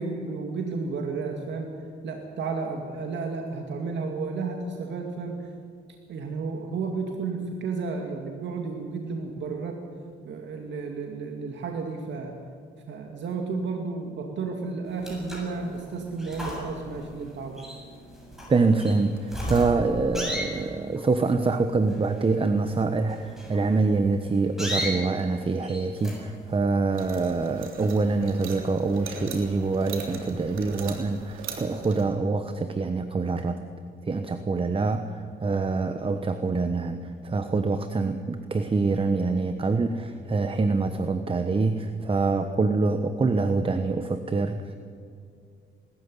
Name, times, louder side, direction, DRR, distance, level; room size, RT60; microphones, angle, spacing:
voice 1, 0.0-1.7 2.0-5.5 6.1-9.8 10.2-12.4 12.9-17.6, right 4 dB, 65° right, 2 dB, 2.4 m, -32 dB
sound 1, 14.9-26.6, equal, ahead, 7.7 m, -37 dB
voice 2, 18.5-33.6 34.0-44.7, right 3 dB, 25° right, 9 dB, 1.2 m, -25 dB
sound 2, 26.9-32.0, right 5 dB, 85° right, 3.3 m, -40 dB
20.0 x 14.0 x 9.9 m, 2.3 s
cardioid pair, 90°, 20 cm